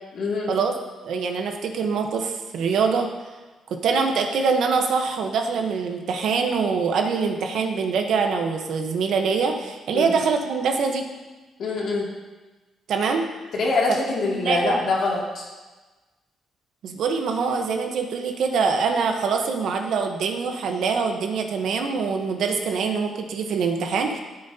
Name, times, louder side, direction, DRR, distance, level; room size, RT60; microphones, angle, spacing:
voice 1, 0.1-0.5 9.9-10.1 11.6-12.1 13.5-15.5, left 3 dB, 60° left, -3 dB, 2.2 m, -24 dB
voice 2, 1.0-3.1 3.7-11.1 12.9-13.3 14.4-14.8 16.8-24.2, right 5 dB, 65° right, 4 dB, 1.0 m, -24 dB
13.5 x 7.9 x 2.8 m, 1.2 s
cardioid pair, 155°, 0 cm